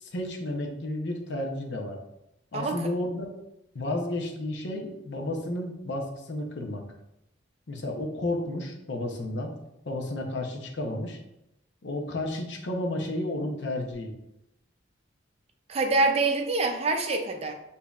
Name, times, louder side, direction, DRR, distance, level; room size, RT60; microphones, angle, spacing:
voice 1, 0.0-2.0 2.5-3.3 3.7-6.8 7.7-9.5 9.9-11.2 11.8-14.1, left 1 dB, 65° left, 2 dB, 0.7 m, -32 dB
voice 2, 2.5-2.9 15.7-17.5, right 3 dB, 30° right, 4 dB, 0.4 m, -25 dB
7.0 x 2.7 x 2.3 m, 0.87 s
head